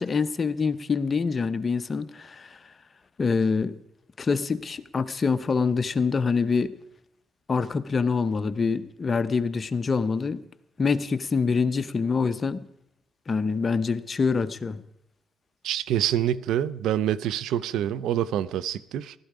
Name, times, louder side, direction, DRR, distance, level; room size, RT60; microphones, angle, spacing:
voice 1, 0.0-2.6 3.2-3.7 4.2-6.7 7.5-10.4 10.8-12.7 13.3-14.8, left 5 dB, 35° left, 0.8 m, -25 dB
voice 2, 15.6-19.1, right 11 dB, 80° right, 0.5 m, -26 dB
15.5 x 13.0 x 4.9 m
cardioid pair, 80°, 0 cm